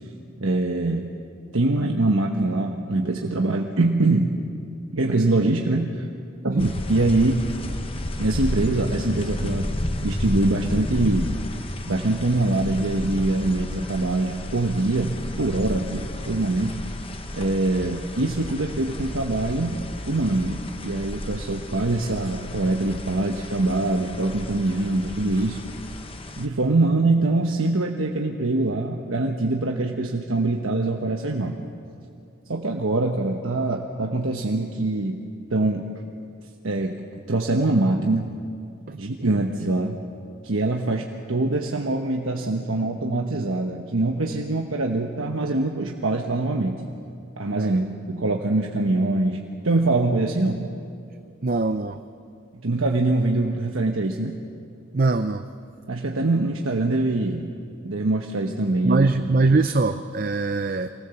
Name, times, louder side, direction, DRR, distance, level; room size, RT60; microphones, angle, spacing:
voice 1, 0.4-1.1 1.5-4.4 4.9-6.1 6.4-7.5 8.2-9.7 10.0-11.4 11.9-16.8 17.3-25.6 26.4-31.6 32.5-35.2 35.5-35.9 36.6-37.0 37.3-38.3 39.0-40.0 40.4-46.8 47.4-50.7 52.5-54.4 55.9-57.5 57.8-59.1, right 2 dB, 75° right, 2 dB, 1.1 m, -23 dB
sound 1, 6.6-26.5, left 1 dB, 25° left, 1.0 m, -32 dB
voice 2, 51.4-52.0 54.9-55.4 58.8-60.9, right 3 dB, 45° right, 9 dB, 0.5 m, -22 dB
24.5 x 18.0 x 7.1 m, 2.4 s
head